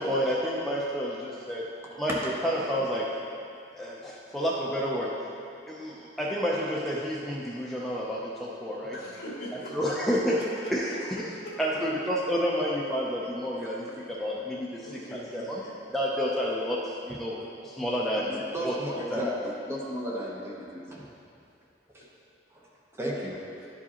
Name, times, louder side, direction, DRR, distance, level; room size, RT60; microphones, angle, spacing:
voice 1, 0.0-1.6 2.0-3.1 3.7-5.2 5.7-9.0 9.7-10.3 10.7-10.9 11.6-14.9 15.1-15.6 15.9-18.7 19.1-19.2, equal, ahead, -5 dB, 0.5 m, -30 dB
voice 2, 8.9-10.7 11.4-11.5 14.8-15.7 23.6-23.7, left 1 dB, 60° left, -6 dB, 1.7 m, -41 dB
voice 3, 18.3-19.3 19.7-21.1 21.9-22.0 22.5-22.7 22.9-23.4, equal, 15° right, -4 dB, 0.9 m, -34 dB
10.5 x 4.8 x 2.9 m, 2.6 s
head